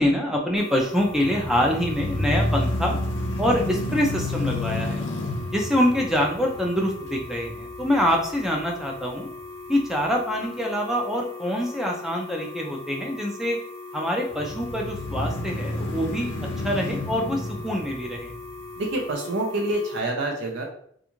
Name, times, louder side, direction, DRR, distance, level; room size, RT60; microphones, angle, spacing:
voice 1, 0.0-3.0 3.4-5.0 5.5-9.3 9.7-13.6 13.9-16.3 16.6-18.3, equal, ahead, 0 dB, 0.3 m, -25 dB
sound 1, 0.6-20.0, left 3 dB, 30° right, 0.8 m, -40 dB
sound 2, 1.1-9.2 9.7-9.8 14.3-18.8, left 1 dB, 70° left, 0.5 m, -30 dB
voice 2, 18.8-20.6, right 1 dB, 60° right, 1 dB, 0.5 m, -27 dB
2.5 x 2.3 x 2.9 m, 0.63 s
head